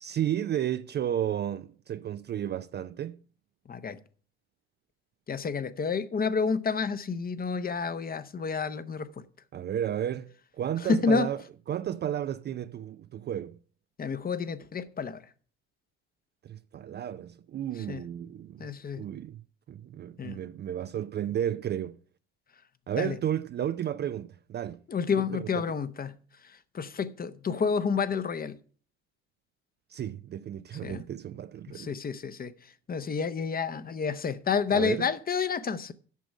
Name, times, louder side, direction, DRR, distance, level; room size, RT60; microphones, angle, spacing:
voice 1, 0.0-3.2 9.5-13.6 16.4-18.7 19.0-19.4 19.7-22.0 22.9-24.8 25.4-25.7 29.9-31.9 34.7-35.1, right 10 dB, 30° right, 0.4 m, -33 dB
voice 2, 5.3-9.1 10.9-11.3 14.0-15.2 17.9-18.0 18.6-19.1 20.2-20.4 23.0-23.2 24.9-26.2 26.7-28.5 30.8-31.0 31.7-32.5 32.9-35.9, left 5 dB, 25° left, 0.8 m, -29 dB
8.2 x 6.2 x 7.1 m
hypercardioid pair, 65°, 33 cm